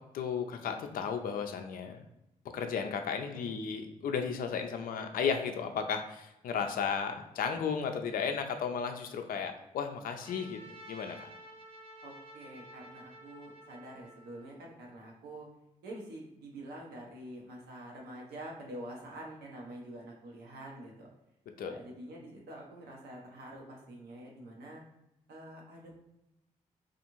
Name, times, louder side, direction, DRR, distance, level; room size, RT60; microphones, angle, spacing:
voice 1, 0.1-2.0 2.5-10.6 10.9-11.3 21.6-21.8, left 6 dB, 60° left, 5 dB, 0.4 m, -34 dB
voice 2, 3.1-3.6 12.0-15.5 15.8-21.1 21.6-24.8 25.3-25.9, right 1 dB, 80° right, -1 dB, 0.8 m, -47 dB
Trumpet, 10.2-14.6, right 1 dB, 40° right, 0.9 m, -52 dB
2.5 x 2.4 x 2.9 m, 0.88 s
hypercardioid pair, 45°, 17 cm